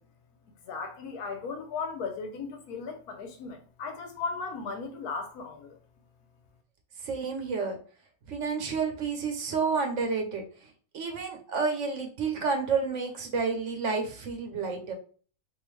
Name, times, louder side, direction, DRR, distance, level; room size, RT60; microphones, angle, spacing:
voice 1, 0.7-5.8, left 4 dB, 85° left, 1.2 m, -36 dB
voice 2, 7.0-7.8 8.3-10.4 10.9-14.9, right 5 dB, 60° right, 1.0 m, -30 dB
3.7 x 2.6 x 3.1 m
omnidirectional pair, 1.6 m